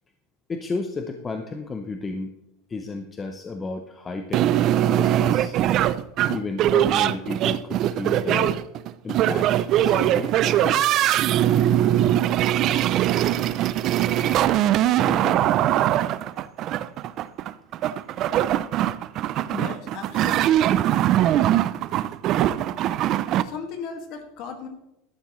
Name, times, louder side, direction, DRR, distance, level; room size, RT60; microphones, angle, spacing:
voice 1, 0.5-2.3 2.7-5.6 6.3-8.5 9.0-10.9 15.0-15.5, left 3 dB, 15° left, 6 dB, 0.6 m, -33 dB
sound 1, 4.3-23.4, right 12 dB, 30° right, 0.4 m, -21 dB
voice 2, 19.5-20.6 23.4-24.7, left 5 dB, 40° left, 5 dB, 1.9 m, -36 dB
13.0 x 11.5 x 3.1 m, 0.88 s
supercardioid pair, 180°, 0 cm